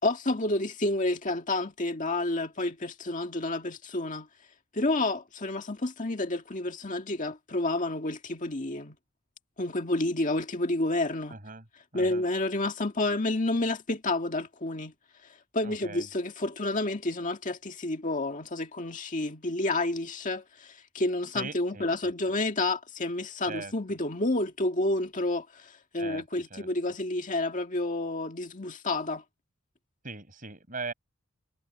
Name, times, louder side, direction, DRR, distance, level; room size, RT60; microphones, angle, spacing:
voice 1, 0.0-4.3 4.7-9.0 9.6-11.4 11.9-14.9 15.5-29.2, left 2 dB, 40° left, 1.9 m, -30 dB
voice 2, 11.3-11.7 11.9-12.2 15.6-16.1 21.3-22.1 23.5-23.7 26.0-26.2 26.5-26.7 30.0-30.9, right 4 dB, 40° right, 5.8 m, -40 dB
head